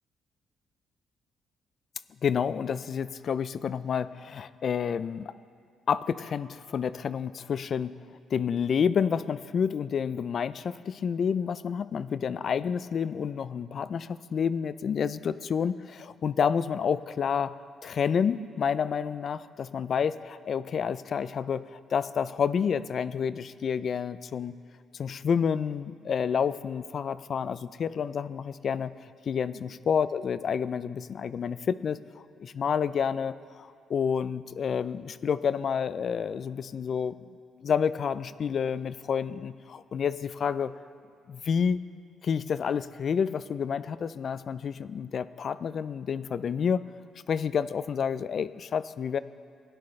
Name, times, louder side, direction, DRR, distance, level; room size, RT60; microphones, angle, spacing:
voice 1, 2.2-5.3 5.9-7.9 8.3-17.6 17.8-24.5 24.9-32.0 32.4-37.3 37.6-40.7 41.3-41.8 42.2-46.8 47.3-49.2, left 7 dB, 55° left, 15 dB, 0.3 m, -29 dB
17.0 x 11.0 x 3.2 m, 2.4 s
cardioid pair, 90°, 0 cm